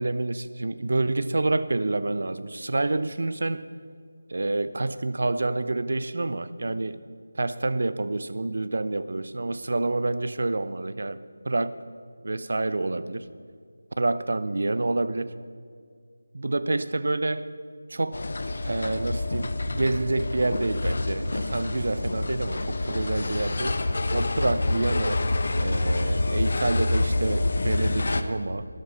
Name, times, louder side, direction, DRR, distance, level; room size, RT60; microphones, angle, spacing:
voice 1, 0.0-3.7 4.3-7.0 7.3-11.2 11.4-11.7 12.2-13.2 14.0-15.3 16.3-17.5 17.9-18.2 18.6-23.8 24.1-25.2 25.6-28.7, right 2 dB, 60° right, 14 dB, 0.6 m, -28 dB
sound 1, 18.1-28.2, left 2 dB, 55° left, 0.8 m, -27 dB
12.5 x 11.5 x 5.6 m, 2.1 s
figure-of-eight pair, 165°, 0 cm